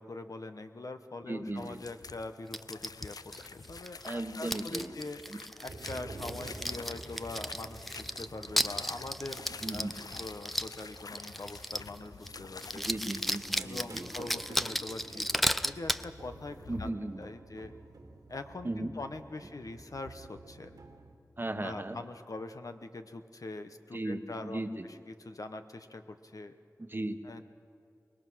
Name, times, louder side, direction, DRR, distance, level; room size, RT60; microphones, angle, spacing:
voice 1, 0.0-5.2 5.6-12.9 13.6-17.7 18.3-20.8 21.6-26.5 27.2-27.4, left 2 dB, 65° left, 8 dB, 1.1 m, -43 dB
voice 2, 1.3-1.8 4.0-5.0 9.6-9.9 12.7-14.1 16.7-17.2 18.6-18.9 21.4-22.0 23.9-24.9 26.8-27.2, right 2 dB, 35° right, 8 dB, 1.2 m, -36 dB
sound 1, 1.6-16.9, left 4 dB, 80° left, 0.5 m, -49 dB
sound 2, 2.5-4.1 4.5-12.0 12.3-12.4 12.6-16.1, equal, ahead, 0.5 m, -35 dB
sound 3, 5.7-21.1, right 2 dB, 90° right, 2.2 m, -50 dB
24.0 x 20.5 x 6.3 m, 2.5 s
wide cardioid pair, 60°, 6 cm